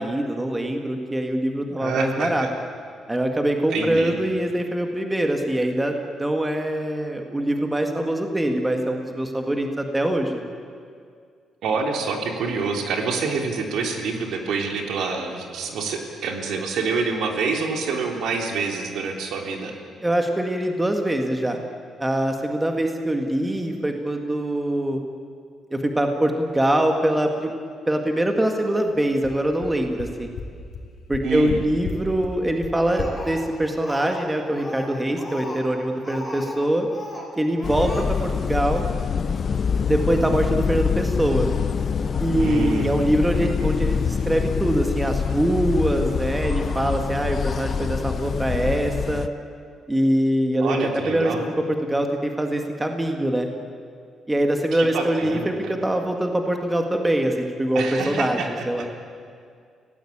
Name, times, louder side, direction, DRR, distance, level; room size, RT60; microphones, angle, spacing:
voice 1, 0.0-2.5 3.1-10.4 20.0-21.6 22.0-25.0 25.7-27.5 27.9-30.3 31.1-36.9 37.4-38.8 39.9-41.5 42.2-49.3 49.9-50.8 51.0-53.5 54.3-58.9, right 1 dB, 10° right, 4 dB, 1.9 m, -23 dB
voice 2, 1.8-2.5 3.7-4.1 11.6-19.7 31.2-31.6 42.4-43.0 50.6-51.4 54.7-55.7 57.8-58.5, right 4 dB, 75° right, 2 dB, 3.6 m, -27 dB
sound 1, 28.9-29.0 29.2-29.3 29.6-29.7 30.0-30.1 30.4-30.5 30.7-30.8 31.1-31.6 31.8-32.0 32.2-32.3 32.6-32.7 33.0-33.1, left 7 dB, 65° left, 3.3 m, -32 dB
Speech, 32.8-34.3 34.6-36.6 36.9-37.3 37.6-38.0, left 1 dB, 5° left, 4.6 m, -36 dB
sound 2, 37.6-49.3, left 6 dB, 40° left, 0.8 m, -25 dB
30.0 x 17.5 x 8.7 m, 2.2 s
cardioid pair, 150°, 0 cm